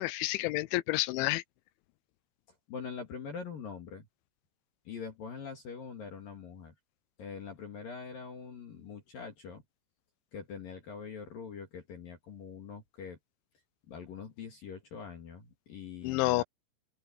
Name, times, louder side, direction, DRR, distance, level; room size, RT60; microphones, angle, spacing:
voice 1, 0.0-1.4 16.0-16.4, left 19 dB, 85° left, 2.7 m, -29 dB
voice 2, 2.7-4.1 4.9-6.7 7.2-9.6 10.3-13.2 13.9-16.4, left 6 dB, 50° left, 3.4 m, -43 dB
open air
omnidirectional pair, 5.8 m